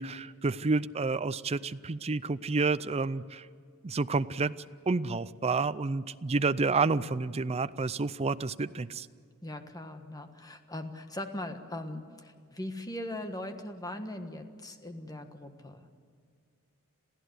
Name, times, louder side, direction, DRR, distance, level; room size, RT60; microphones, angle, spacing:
voice 1, 0.0-3.5 3.8-4.5 4.9-9.1, right 3 dB, 30° right, 14 dB, 0.5 m, -29 dB
voice 2, 9.4-15.9, left 1 dB, 15° left, 7 dB, 1.5 m, -40 dB
27.5 x 15.5 x 8.1 m, 2.2 s
head